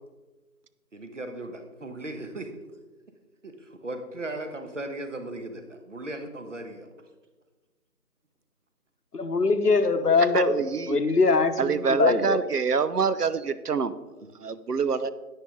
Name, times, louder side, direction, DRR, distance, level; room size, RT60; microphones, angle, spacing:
voice 1, 0.9-2.5 3.4-6.9 14.2-14.3, right 2 dB, 50° right, 7 dB, 1.3 m, -37 dB
voice 2, 9.1-10.6 10.9-12.4, left 4 dB, 80° left, 9 dB, 1.0 m, -22 dB
voice 3, 10.3-11.0 11.6-14.0 14.4-15.1, right 5 dB, 80° right, 14 dB, 0.8 m, -26 dB
10.0 x 9.6 x 3.7 m, 1.2 s
figure-of-eight pair, 165°, 46 cm